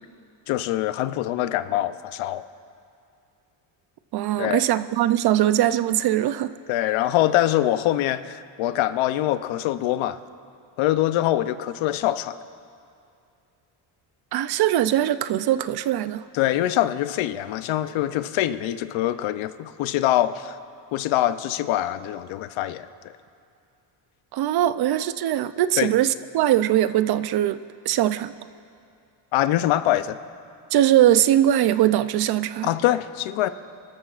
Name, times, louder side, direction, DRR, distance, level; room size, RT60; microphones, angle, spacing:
voice 1, 0.5-2.4 4.4-4.6 6.7-10.2 10.8-12.4 16.3-20.6 20.9-22.9 25.8-25.9 29.3-30.2 32.6-33.5, left 13 dB, 75° left, 12 dB, 0.7 m, -24 dB
voice 2, 4.1-6.5 14.3-16.2 24.3-28.3 30.7-32.7, right 12 dB, 55° right, 13 dB, 0.5 m, -21 dB
28.0 x 13.0 x 2.4 m, 2.5 s
cardioid pair, 110°, 47 cm